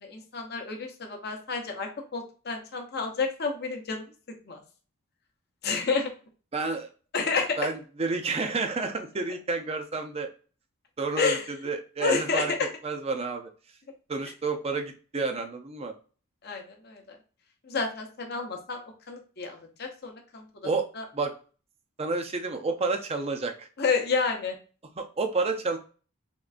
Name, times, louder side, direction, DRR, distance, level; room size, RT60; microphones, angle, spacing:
voice 1, 0.0-4.0 4.5-4.6 5.6-6.1 7.1-7.6 11.2-11.5 12.0-12.7 16.4-17.2 17.6-18.8 19.1-20.4 20.9-21.0 23.8-24.6, left 4 dB, 45° left, 3 dB, 0.7 m, -30 dB
voice 2, 6.5-6.9 7.6-10.3 11.0-12.5 12.8-13.5 14.1-15.9 20.6-20.8 21.1-21.3 22.0-23.7 25.0-25.8, right 3 dB, 25° right, 5 dB, 0.5 m, -30 dB
3.7 x 3.1 x 2.4 m, 0.38 s
head